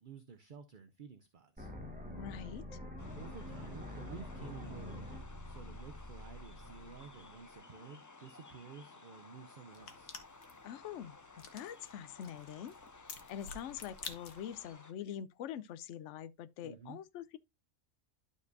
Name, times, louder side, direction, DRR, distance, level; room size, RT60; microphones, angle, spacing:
voice 1, 0.0-1.7 3.1-10.1 16.6-17.0, right 5 dB, 50° right, 0.7 m, -52 dB
sound 1, 1.6-7.5, left 1 dB, 5° right, 1.4 m, -46 dB
voice 2, 2.2-2.8 10.6-11.2 11.5-17.4, left 9 dB, 70° left, 0.9 m, -44 dB
sound 2, 3.0-14.9, left 3 dB, 30° left, 0.3 m, -56 dB
sound 3, 9.7-14.7, left 6 dB, 85° left, 1.5 m, -51 dB
11.5 x 5.2 x 2.6 m
omnidirectional pair, 1.4 m